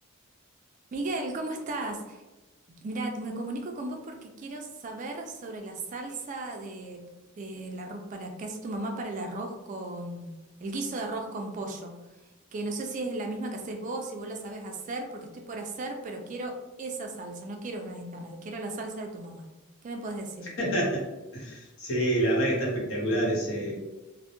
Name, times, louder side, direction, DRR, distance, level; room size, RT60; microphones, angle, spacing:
voice 1, 0.9-2.2 2.8-7.1 7.4-10.3 10.6-11.9 12.5-19.5 19.8-20.5, right 2 dB, 35° right, 3 dB, 0.3 m, -35 dB
voice 2, 20.6-21.1 21.3-23.7, right 1 dB, 75° left, -4 dB, 1.0 m, -27 dB
2.1 x 2.1 x 2.8 m, 1.1 s
head